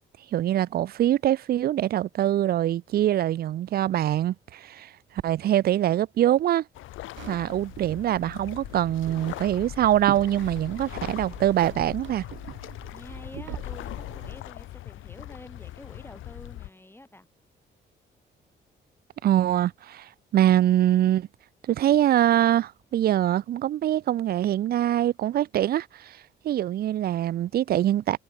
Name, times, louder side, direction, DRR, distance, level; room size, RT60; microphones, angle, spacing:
voice 1, 0.3-4.9 5.2-6.6 7.3-12.2 19.2-21.3 21.7-26.2 26.4-28.2, right 12 dB, 50° right, 0.4 m, -24 dB
sound 1, 6.7-16.7, left 15 dB, 85° left, 1.3 m, -40 dB
sound 2, 7.2-14.3, right 14 dB, 75° right, 0.9 m, -43 dB
voice 2, 12.9-17.3, left 1 dB, 10° left, 2.2 m, -47 dB
cardioid pair, 90°, 20 cm